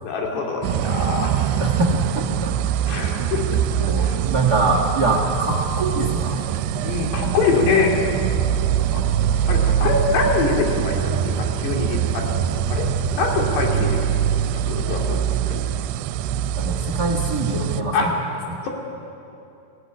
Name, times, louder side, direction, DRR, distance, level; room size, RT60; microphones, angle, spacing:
voice 1, 0.0-1.6 2.9-3.6 4.0-4.2 5.0-5.2 6.8-7.9 8.9-9.1 9.5-14.2 14.6-15.2 15.4-15.6 17.9-18.1, left 4 dB, 85° left, 0 dB, 4.7 m, -24 dB
sound 1, 0.6-17.8, right 9 dB, 85° right, 2.7 m, -23 dB
voice 2, 1.6-2.5 2.9-3.3 3.8-6.5 8.6-8.8 16.5-18.1 18.5-18.6, right 3 dB, 45° right, 1 dB, 1.3 m, -24 dB
18.0 x 17.5 x 9.8 m, 2.7 s
omnidirectional pair, 4.7 m